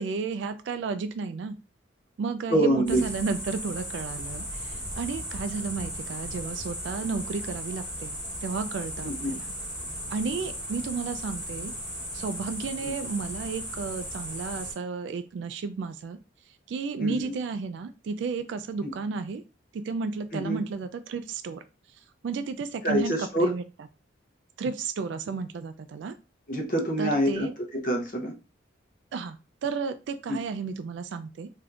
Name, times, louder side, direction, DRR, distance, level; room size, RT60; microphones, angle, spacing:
voice 1, 0.0-1.6 2.2-9.5 10.1-11.7 12.1-16.2 16.7-19.4 19.7-21.6 22.2-23.6 24.6-26.1 27.0-27.5 29.1-31.5, right 4 dB, 70° right, 11 dB, 0.3 m, -32 dB
voice 2, 2.5-3.0 9.0-9.4 12.8-12.9 17.0-17.4 18.8-18.9 20.3-20.6 22.8-23.5 26.5-28.3 30.3-30.4, right 1 dB, 45° left, 1 dB, 0.7 m, -26 dB
sound 1, 2.9-14.7, equal, 5° right, 1.2 m, -36 dB
3.4 x 2.7 x 2.4 m, 0.30 s
head